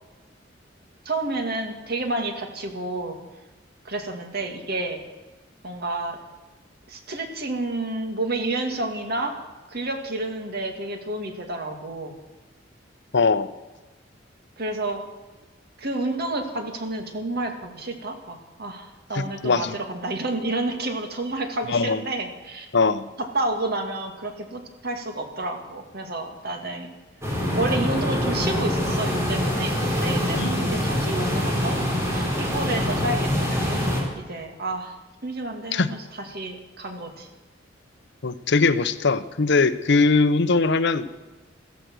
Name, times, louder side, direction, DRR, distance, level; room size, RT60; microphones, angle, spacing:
voice 1, 1.1-3.2 3.8-5.0 5.6-6.2 6.9-9.4 9.7-12.1 14.6-15.0 15.8-22.7 23.2-26.9 27.5-31.8 32.4-33.8 34.2-34.9 35.2-37.3, right 2 dB, 55° right, 4 dB, 2.4 m, -30 dB
voice 2, 13.1-13.5 19.2-19.8 21.7-22.0 22.7-23.0 30.3-30.6 35.7-35.9 38.2-41.1, left 4 dB, 65° left, 13 dB, 0.8 m, -21 dB
sound 1, 27.2-34.0, left 1 dB, 15° right, 4.3 m, -24 dB
15.0 x 14.5 x 6.3 m, 1.2 s
head